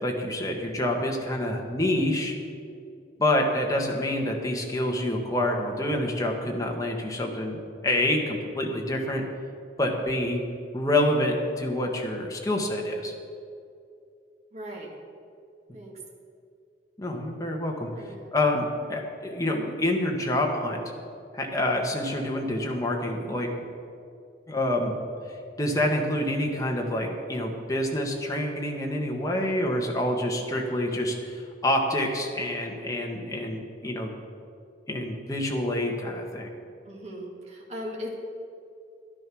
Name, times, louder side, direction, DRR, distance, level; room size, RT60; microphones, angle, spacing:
voice 1, 0.0-2.3 3.2-9.2 9.8-10.4 10.7-13.1 17.0-17.9 18.3-20.8 21.3-23.5 24.5-25.0 25.6-34.1 34.9-36.5, left 1 dB, 20° left, 1 dB, 1.6 m, -27 dB
voice 2, 14.5-15.0 15.7-16.0 17.9-18.3 36.8-38.1, equal, 40° right, -1 dB, 1.9 m, -39 dB
12.0 x 10.5 x 6.3 m, 2.4 s
head